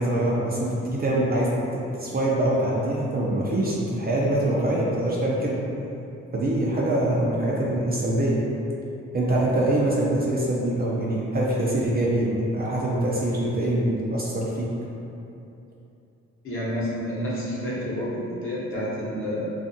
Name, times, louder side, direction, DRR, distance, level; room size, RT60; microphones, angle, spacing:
voice 1, 0.0-5.6 6.3-8.4 9.1-14.7, right 1 dB, 30° right, -5 dB, 0.4 m, -24 dB
voice 2, 16.4-19.5, equal, 45° left, -8 dB, 0.9 m, -29 dB
2.5 x 2.4 x 2.6 m, 2.8 s
cardioid pair, 90°, 30 cm